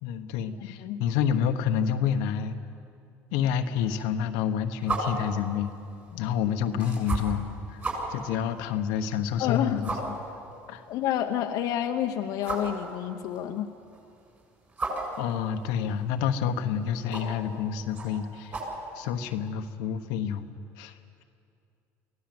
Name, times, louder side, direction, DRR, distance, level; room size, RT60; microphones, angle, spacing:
voice 1, 0.0-2.6 3.3-5.7 6.2-7.8 8.1-10.2 10.7-10.8 15.2-18.5 18.9-20.9, left 8 dB, 85° left, 6 dB, 1.2 m, -28 dB
sound 1, 4.8-19.5, right 2 dB, 30° right, 7.3 m, -38 dB
voice 2, 9.4-9.8 10.9-13.7, left 11 dB, 65° left, 4 dB, 1.0 m, -29 dB
24.0 x 16.5 x 7.8 m, 2.5 s
cardioid pair, 120°, 7 cm